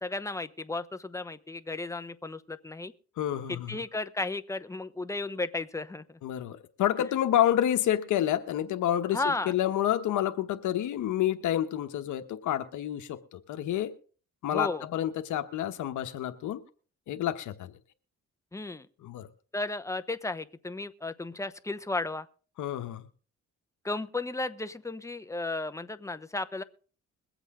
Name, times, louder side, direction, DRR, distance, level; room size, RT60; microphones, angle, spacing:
voice 1, 0.0-2.9 3.5-6.0 9.1-9.5 14.5-14.8 18.5-18.9 19.5-22.3 23.8-26.6, left 2 dB, 10° left, 0.9 m, -34 dB
voice 2, 3.2-3.8 6.2-13.9 14.4-16.6 17.1-17.7 19.0-19.3 22.6-23.0, left 11 dB, 80° left, 1.1 m, -29 dB
22.0 x 8.1 x 3.7 m
cardioid pair, 90°, 30 cm